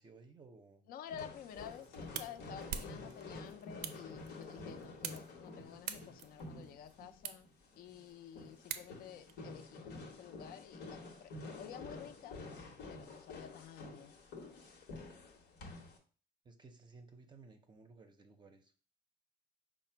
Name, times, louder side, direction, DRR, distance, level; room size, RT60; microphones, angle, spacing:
voice 1, 0.0-0.9 16.4-18.8, right 3 dB, 25° right, 6 dB, 0.5 m, -58 dB
voice 2, 0.9-7.5 7.8-12.4 12.9-14.1, left 9 dB, 60° left, 11 dB, 0.4 m, -51 dB
sound 1, 1.1-16.0, left 3 dB, 90° left, 0.9 m, -50 dB
sound 2, 1.5-9.3, right 9 dB, 85° right, 0.5 m, -48 dB
4.8 x 2.1 x 4.4 m, 0.39 s
cardioid pair, 110°, 17 cm